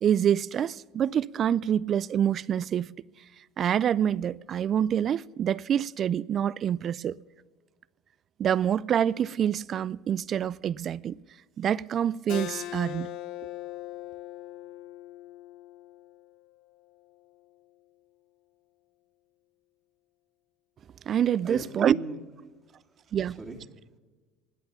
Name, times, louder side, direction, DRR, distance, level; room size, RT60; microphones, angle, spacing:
voice 1, 0.0-2.9 3.6-7.2 8.4-11.2 11.6-13.1 21.1-22.0 23.1-23.4, right 9 dB, 40° right, 0.3 m, -26 dB
Keyboard (musical), 12.3-17.5, left 14 dB, 70° left, 0.7 m, -41 dB
voice 2, 21.4-23.8, right 3 dB, 25° right, 2.1 m, -40 dB
19.0 x 8.0 x 6.7 m
supercardioid pair, 100°, 0 cm